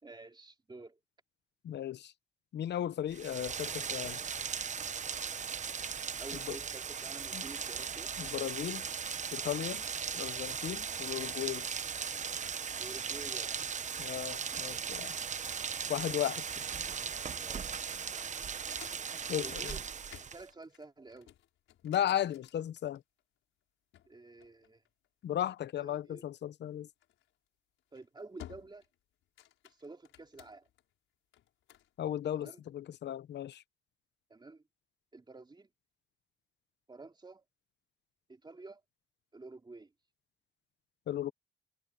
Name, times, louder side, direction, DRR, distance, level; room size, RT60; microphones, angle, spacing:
voice 1, 0.0-1.0 6.2-8.2 12.8-13.6 14.5-14.6 17.4-17.7 19.4-19.8 20.2-21.3 24.1-24.8 25.8-26.2 27.9-28.8 29.6-30.7 32.3-32.6 34.3-34.6 35.1-35.7 36.9-37.4 38.3-38.8 39.3-39.9, right 3 dB, 20° right, 3.5 m, -50 dB
voice 2, 1.6-2.1 2.5-4.2 6.5-6.6 7.3-7.5 8.2-8.8 9.3-9.9 10.1-11.7 14.0-15.1 15.9-16.4 19.3-19.8 21.8-23.0 25.2-26.9 32.0-33.6 41.1-41.3, left 11 dB, 60° left, 0.9 m, -35 dB
Rain, 3.1-20.5, right 6 dB, 40° right, 0.9 m, -38 dB
sound 1, 18.5-23.2 23.9-25.2 27.0-27.3 27.8-28.0 28.4-28.9 29.2-30.8 31.3-31.9, left 12 dB, 80° left, 5.9 m, -55 dB
cardioid pair, 90°, 20 cm